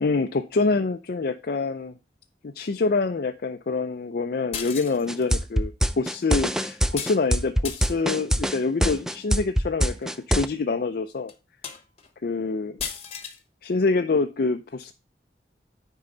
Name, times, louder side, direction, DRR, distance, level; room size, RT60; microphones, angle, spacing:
voice 1, 0.0-1.9 2.4-11.3 12.2-12.8 13.6-14.9, left 3 dB, 55° left, 6 dB, 0.5 m, -26 dB
sound 1, 4.5-5.3 7.0-7.2 7.6-8.1 8.9-9.2 10.0-10.1 10.6-10.7 11.3-11.4 11.6-12.1 12.8-13.4, left 7 dB, 35° left, 1.1 m, -35 dB
sound 2, 5.1-10.5, equal, 5° right, 0.4 m, -23 dB
9.7 x 4.7 x 3.9 m, 0.28 s
head